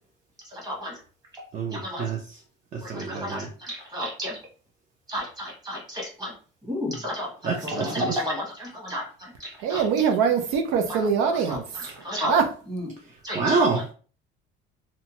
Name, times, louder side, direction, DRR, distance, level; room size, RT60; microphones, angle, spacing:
voice 1, 0.5-0.9 1.7-2.1 2.8-4.4 5.1-6.3 6.6-9.8 11.5-11.6 12.0-12.3 12.7-12.8 13.2-13.4, equal, 20° right, 1.3 m, -32 dB
voice 2, 1.5-2.4 2.7-3.5 7.4-8.2 13.3-13.8, right 4 dB, 40° right, 0.6 m, -27 dB
voice 3, 9.6-11.9 12.2-12.5, right 6 dB, 85° right, 0.5 m, -23 dB
2.8 x 2.2 x 2.8 m
cardioid pair, 135°, 20 cm